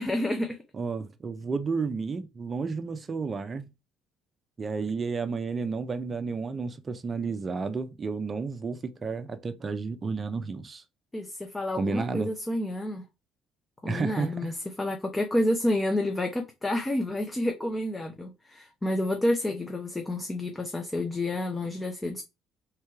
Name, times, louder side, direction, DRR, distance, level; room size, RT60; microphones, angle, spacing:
voice 1, 0.0-0.6 11.1-13.0 13.8-22.2, left 1 dB, 15° left, 0.8 m, -29 dB
voice 2, 0.7-3.7 4.6-10.8 11.7-12.3 13.9-14.5, right 4 dB, 30° right, 0.5 m, -31 dB
3.7 x 3.0 x 4.7 m
cardioid pair, 95°, 0 cm